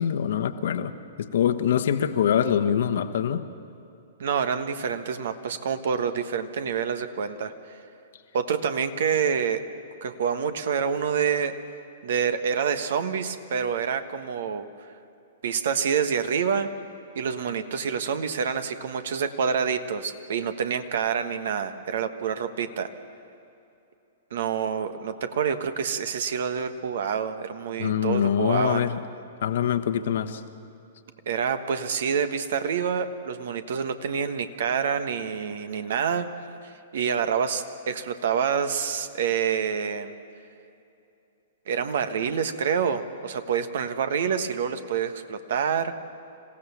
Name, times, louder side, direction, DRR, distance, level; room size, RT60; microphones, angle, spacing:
voice 1, 0.0-3.5 27.8-29.0 29.4-30.4, left 9 dB, 65° left, 10 dB, 1.2 m, -24 dB
voice 2, 4.2-7.5 8.3-9.6 10.0-11.5 12.0-14.7 15.4-16.7 17.1-22.9 24.3-28.9 31.3-36.3 36.9-40.1 41.7-45.9, right 7 dB, 65° right, 9 dB, 1.3 m, -27 dB
27.0 x 16.0 x 7.1 m, 2.7 s
figure-of-eight pair, 115°, 0 cm